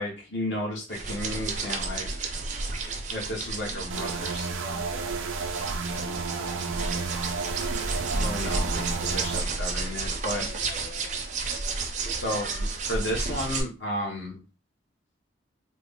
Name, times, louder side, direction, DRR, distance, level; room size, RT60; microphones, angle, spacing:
voice 1, 0.0-2.1 3.1-4.5 8.2-10.4 11.5-11.6 12.2-14.4, left 1 dB, 65° left, -2 dB, 1.2 m, -33 dB
sound 1, 0.9-13.6, right 3 dB, 40° right, 0.5 m, -32 dB
sound 2, 3.9-9.4, right 4 dB, 90° right, 0.5 m, -32 dB
voice 2, 4.6-7.3 10.2-11.8, left 2 dB, 30° left, -3 dB, 0.8 m, -47 dB
3.6 x 2.0 x 3.6 m, 0.34 s
head